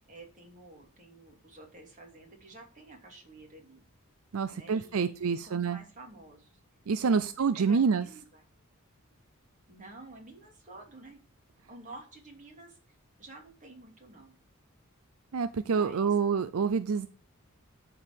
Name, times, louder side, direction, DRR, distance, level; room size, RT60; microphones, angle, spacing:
voice 1, 0.1-3.8 4.5-6.6 7.0-8.4 9.7-11.2 11.7-12.8 13.2-14.3 15.6-16.1, right 2 dB, 35° right, 1 dB, 3.0 m, -50 dB
voice 2, 4.3-5.8 6.9-8.1 15.3-17.1, right 5 dB, 75° right, 12 dB, 0.5 m, -27 dB
10.5 x 4.7 x 6.8 m, 0.39 s
head